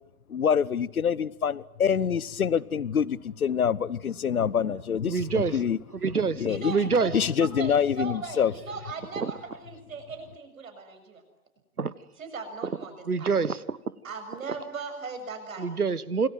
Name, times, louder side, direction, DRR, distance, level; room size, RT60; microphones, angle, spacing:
voice 1, 0.3-5.8 6.4-6.7 7.1-8.5, left 7 dB, 70° left, 21 dB, 1.1 m, -26 dB
voice 2, 5.0-5.6 5.9-7.1 9.2-9.3 11.8-11.9 13.1-13.8 15.6-16.3, right 5 dB, 80° right, 19 dB, 1.5 m, -26 dB
voice 3, 6.5-11.2 12.2-13.3 14.0-15.7, right 4 dB, 65° right, 6 dB, 6.9 m, -38 dB
29.0 x 21.5 x 9.4 m, 0.79 s
figure-of-eight pair, 115°, 44 cm